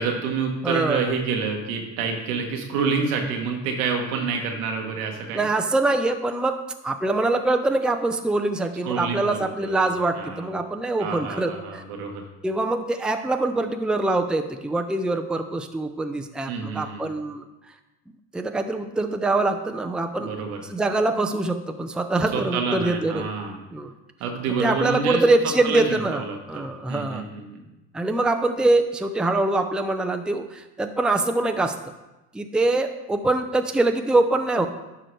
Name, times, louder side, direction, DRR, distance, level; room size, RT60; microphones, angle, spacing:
voice 1, 0.0-5.4 8.8-9.9 10.1-10.5 11.0-12.2 16.5-17.1 20.2-20.6 22.3-23.6 24.2-25.2 25.6-27.6, right 5 dB, 75° right, 2 dB, 1.3 m, -28 dB
voice 2, 0.6-1.1 5.3-11.8 12.4-17.4 18.3-20.3 20.7-23.3 23.7-23.9 24.6-27.2 27.9-31.8 32.3-34.7, right 2 dB, ahead, 5 dB, 0.6 m, -24 dB
11.5 x 4.9 x 3.2 m, 1.0 s
hypercardioid pair, 60°, 43 cm